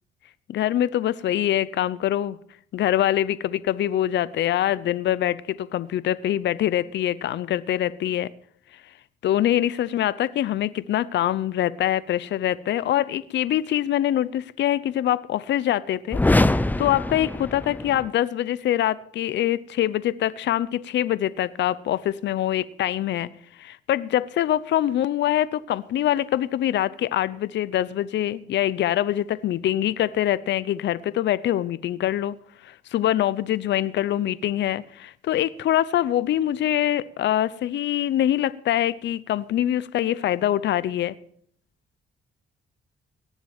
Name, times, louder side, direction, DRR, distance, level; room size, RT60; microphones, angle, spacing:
voice 1, 0.5-2.4 2.7-8.3 9.2-16.2 16.5-23.3 23.6-32.4 32.6-41.2, left 12 dB, 65° left, 0.6 m, -24 dB
sound 1, 16.1-18.1, left 2 dB, 10° left, 0.5 m, -23 dB
18.0 x 7.3 x 7.2 m
cardioid pair, 90°, 20 cm